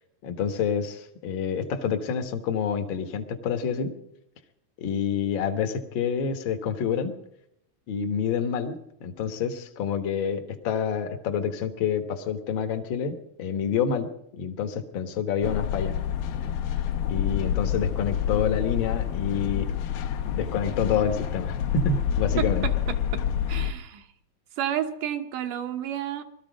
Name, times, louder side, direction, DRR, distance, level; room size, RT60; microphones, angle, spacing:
voice 1, 0.2-3.9 4.8-7.1 7.9-14.1 14.4-16.0 17.1-19.7 20.2-22.6, left 7 dB, 60° left, 6 dB, 1.3 m, -28 dB
sound 1, 15.4-23.7, left 9 dB, 85° left, 2.7 m, -28 dB
voice 2, 22.4-23.2 23.5-24.1 24.6-26.2, right 10 dB, 70° right, 7 dB, 2.2 m, -31 dB
20.0 x 13.5 x 5.2 m, 0.78 s
omnidirectional pair, 4.1 m